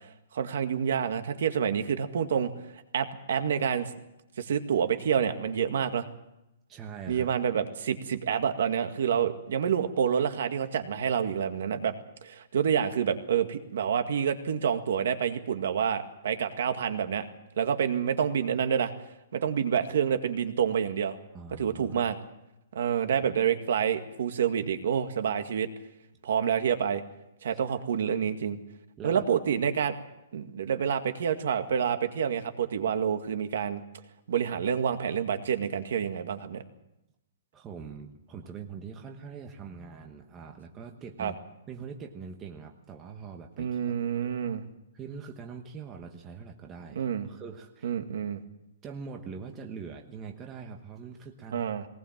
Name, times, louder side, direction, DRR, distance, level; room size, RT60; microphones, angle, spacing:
voice 1, 0.3-2.5 2.9-3.9 4.4-6.1 7.1-11.9 12.2-17.3 17.6-18.9 19.3-21.2 21.6-22.2 22.8-25.7 26.2-27.0 27.4-28.6 29.0-29.9 30.3-33.8 34.3-36.6 41.2-41.3 43.6-44.6 47.0-47.3 47.8-48.4 51.5-51.9, right 8 dB, 60° right, 8 dB, 1.9 m, -28 dB
voice 2, 6.7-7.3 21.3-22.1 23.2-23.3 29.0-29.2 37.5-41.4 41.7-44.5 44.9-48.0 48.8-51.7, right 5 dB, 15° right, 3 dB, 1.2 m, -43 dB
20.5 x 19.0 x 7.5 m, 0.89 s
hypercardioid pair, 175°, 0 cm